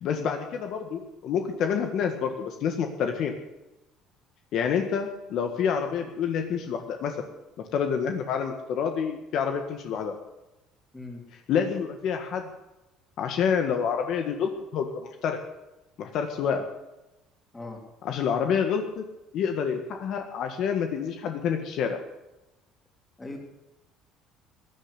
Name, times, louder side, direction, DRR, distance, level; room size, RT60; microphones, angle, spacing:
voice 1, 0.0-3.3 4.5-7.2 7.7-10.1 11.5-12.5 13.2-15.4 16.0-16.7 18.0-19.0 19.3-22.0, left 7 dB, 55° left, 5 dB, 1.6 m, -28 dB
voice 2, 10.9-11.2 17.5-17.8 23.2-23.4, left 2 dB, 15° left, 1 dB, 3.6 m, -39 dB
16.0 x 10.5 x 8.3 m, 0.98 s
cardioid pair, 140°, 0 cm